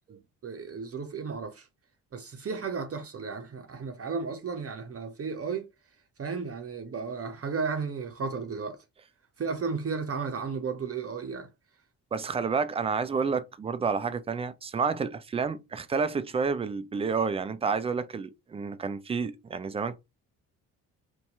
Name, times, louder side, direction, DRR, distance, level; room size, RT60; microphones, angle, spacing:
voice 1, 0.1-1.7 2.1-5.7 6.2-8.8 9.4-11.5, right 5 dB, 35° right, 0.7 m, -34 dB
voice 2, 12.1-20.0, right 5 dB, 15° right, 0.3 m, -30 dB
2.8 x 2.2 x 4.0 m
hypercardioid pair, 45°, 42 cm